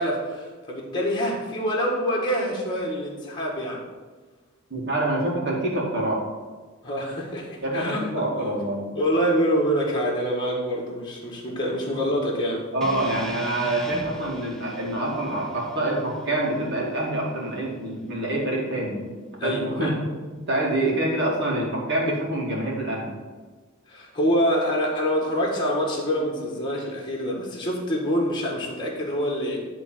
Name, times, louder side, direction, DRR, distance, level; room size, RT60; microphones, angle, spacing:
voice 1, 0.0-3.8 6.8-8.0 8.9-12.7 19.4-19.9 23.9-29.6, equal, 20° left, -2 dB, 1.7 m, -26 dB
voice 2, 4.7-6.2 7.6-8.8 12.7-19.0 19.4-19.9 20.3-23.1, right 1 dB, 55° right, -3 dB, 2.3 m, -26 dB
sound 1, 12.8-17.0, left 1 dB, ahead, 0.6 m, -39 dB
11.0 x 3.9 x 7.5 m, 1.4 s
head